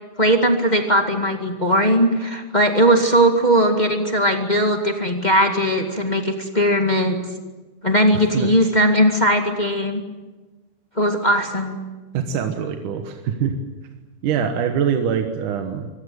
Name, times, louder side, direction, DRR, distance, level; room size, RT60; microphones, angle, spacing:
voice 1, 0.2-7.2 7.8-10.0 11.0-11.8, equal, 20° left, 3 dB, 1.3 m, -18 dB
voice 2, 8.1-8.6 12.1-13.6 14.2-15.9, right 7 dB, 70° right, 5 dB, 2.7 m, -24 dB
24.5 x 19.5 x 9.3 m, 1.2 s
omnidirectional pair, 4.0 m